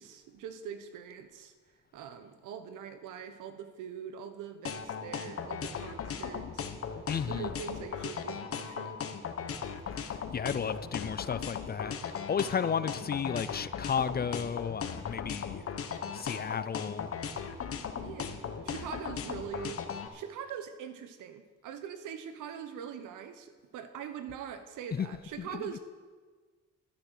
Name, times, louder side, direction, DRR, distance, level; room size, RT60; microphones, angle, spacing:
voice 1, 0.0-1.5 1.9-6.7 7.3-9.2 17.9-19.8 20.1-25.8, right 8 dB, 90° right, 10 dB, 1.1 m, -43 dB
sound 1, 4.6-20.1, left 7 dB, 50° left, 1.1 m, -37 dB
voice 2, 7.1-7.5 10.0-15.6 16.1-17.1 24.9-25.1 25.4-25.8, left 7 dB, 30° left, 15 dB, 0.5 m, -33 dB
11.5 x 10.5 x 6.5 m, 1.4 s
cardioid pair, 90°, 30 cm